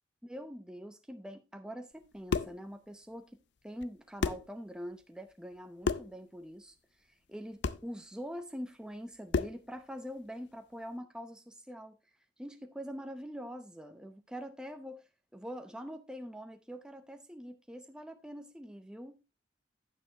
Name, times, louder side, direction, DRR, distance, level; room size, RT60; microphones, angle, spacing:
voice 1, 0.2-3.3 3.6-6.8 7.3-12.0 12.4-15.0 15.3-19.1, equal, 5° right, 0.7 m, -44 dB
sound 1, 2.0-2.6 3.8-3.9 4.2-4.5 5.8-6.2 7.6-7.9 9.3-9.7, left 4 dB, 70° left, 0.5 m, -32 dB
10.0 x 8.7 x 2.9 m
head